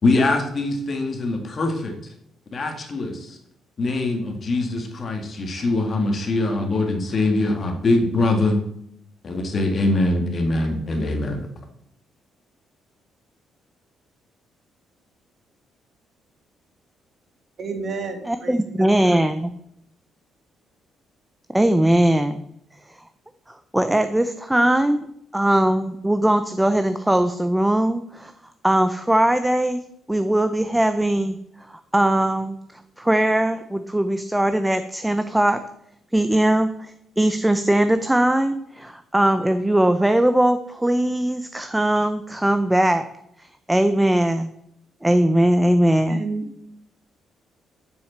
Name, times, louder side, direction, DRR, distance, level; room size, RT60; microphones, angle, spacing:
voice 1, 0.0-2.0 2.5-3.4 3.8-8.6 9.2-11.5, left 2 dB, 40° left, 4 dB, 1.8 m, -23 dB
voice 2, 17.6-18.9 46.1-46.5, right 4 dB, 45° right, 5 dB, 1.8 m, -30 dB
voice 3, 18.2-19.5 21.5-22.4 22.9-23.0 23.5-25.1 25.3-28.3 28.6-29.8 30.1-31.4 31.7-35.6 36.1-43.0 43.4-44.5 45.0-46.2, right 1 dB, 5° right, 9 dB, 0.5 m, -20 dB
7.3 x 6.2 x 7.3 m, 0.75 s
cardioid pair, 110°, 0 cm